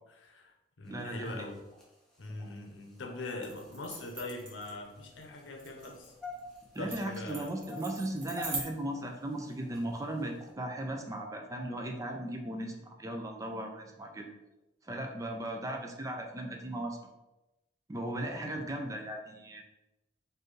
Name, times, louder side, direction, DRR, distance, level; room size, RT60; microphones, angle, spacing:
voice 1, 0.2-0.5 0.8-1.6 2.2-6.1 6.8-7.5, left 2 dB, 90° left, 3 dB, 0.7 m, -42 dB
sound 1, 0.8-10.5, left 2 dB, 5° left, 0.9 m, -51 dB
voice 2, 0.9-1.4 6.7-14.3 14.8-17.0 17.9-19.6, right 1 dB, 20° right, 3 dB, 0.4 m, -37 dB
sound 2, 3.4-8.6, right 3 dB, 85° right, 1.2 m, -43 dB
4.3 x 2.6 x 3.1 m, 0.96 s
head